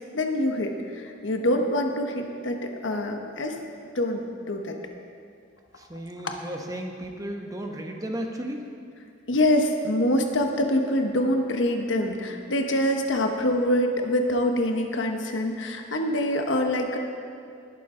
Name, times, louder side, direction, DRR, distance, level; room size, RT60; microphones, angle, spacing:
voice 1, 0.1-3.6 3.9-4.8 6.2-6.3 9.3-17.0, left 1 dB, 75° left, 4 dB, 1.2 m, -25 dB
voice 2, 5.8-8.7, right 1 dB, 20° right, 2 dB, 1.0 m, -34 dB
19.5 x 8.6 x 3.8 m, 2.3 s
head